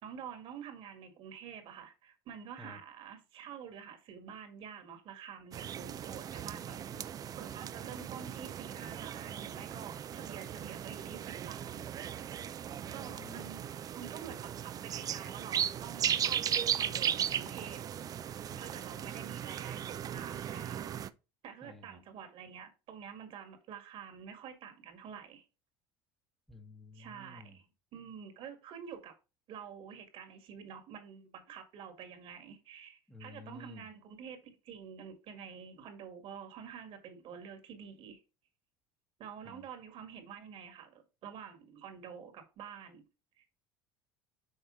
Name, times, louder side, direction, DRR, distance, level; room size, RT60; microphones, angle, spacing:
voice 1, 0.0-6.8 7.4-12.1 12.9-17.8 18.6-20.9 21.4-25.5 26.9-27.7 27.9-29.1 29.5-38.2 39.2-43.0 43.4-43.5, right 7 dB, 55° right, 1.9 m, -48 dB
sound 1, 5.5-21.1, right 9 dB, 35° right, 0.4 m, -37 dB
voice 2, 6.4-7.1 7.8-7.9 12.7-13.5 18.5-18.7 21.6-22.0 26.5-27.6 33.1-33.9 39.4-39.6, left 2 dB, 5° left, 1.1 m, -52 dB
6.5 x 4.5 x 3.9 m
supercardioid pair, 110°, 11 cm